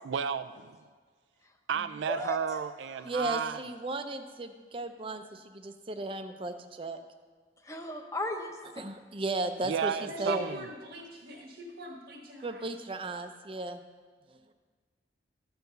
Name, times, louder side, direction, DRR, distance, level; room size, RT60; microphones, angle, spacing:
voice 1, 0.0-0.8 1.7-3.6 9.6-10.6, right 7 dB, 90° right, 12 dB, 0.4 m, -32 dB
voice 2, 1.4-2.4 2.8-3.1 7.6-8.8, left 1 dB, 15° left, 4 dB, 0.8 m, -37 dB
voice 3, 3.0-7.0 8.8-10.5 12.4-13.8 14.3-14.5, right 2 dB, 30° right, 8 dB, 0.6 m, -35 dB
voice 4, 10.1-12.6, equal, 70° right, -1 dB, 1.3 m, -42 dB
13.5 x 4.6 x 6.6 m, 1.5 s
head